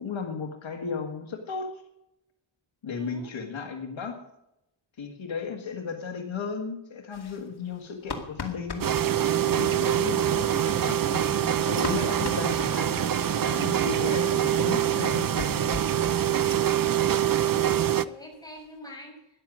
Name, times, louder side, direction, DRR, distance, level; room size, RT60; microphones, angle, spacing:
voice 1, 0.0-1.7 2.8-4.2 5.0-8.8 9.4-13.0 13.4-15.3, left 5 dB, 75° left, 4 dB, 1.8 m, -35 dB
voice 2, 2.9-3.3 17.4-19.4, left 1 dB, 10° left, 1 dB, 5.6 m, -46 dB
sound 1, 7.1-9.1 10.3-13.4 13.7-13.8 14.0-14.1 14.4-16.5 16.7-16.8 17.2-17.3 17.6-17.7 18.0-18.8, left 4 dB, 55° left, 2.3 m, -40 dB
sound 2, 8.8-18.1, right 10 dB, 45° right, 0.6 m, -25 dB
13.0 x 11.0 x 6.3 m, 0.84 s
wide cardioid pair, 95°, 47 cm